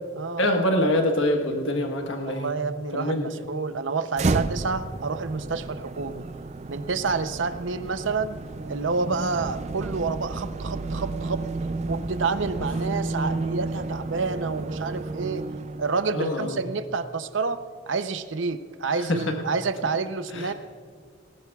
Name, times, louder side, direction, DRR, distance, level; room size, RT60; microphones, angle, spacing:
voice 1, 0.4-2.5 2.9-3.5 16.1-16.6 19.1-19.3 20.3-20.5, left 1 dB, 85° left, 3 dB, 1.4 m, -25 dB
voice 2, 2.2-6.2 6.7-8.4 8.7-11.4 11.9-15.4 15.8-20.5, right 4 dB, 75° right, 11 dB, 0.7 m, -29 dB
sound 1, 4.1-16.1, right 3 dB, 35° right, 0.4 m, -31 dB
20.0 x 19.0 x 2.4 m, 2.1 s
head